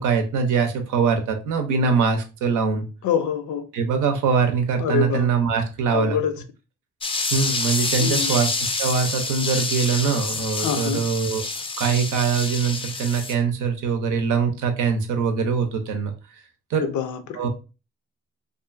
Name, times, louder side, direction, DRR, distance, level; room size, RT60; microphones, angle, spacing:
voice 1, 0.0-2.8 3.7-6.2 7.3-11.4 11.8-16.1 16.7-16.9 17.3-17.5, right 5 dB, 80° right, 0.6 m, -23 dB
voice 2, 3.0-3.7 4.8-5.3 5.9-6.4 8.0-8.3 10.6-11.0 16.8-17.5, left 7 dB, 75° left, 0.5 m, -25 dB
sound 1, 7.0-13.3, left 3 dB, 20° left, 0.4 m, -27 dB
2.5 x 2.3 x 2.4 m
supercardioid pair, 60°, 30 cm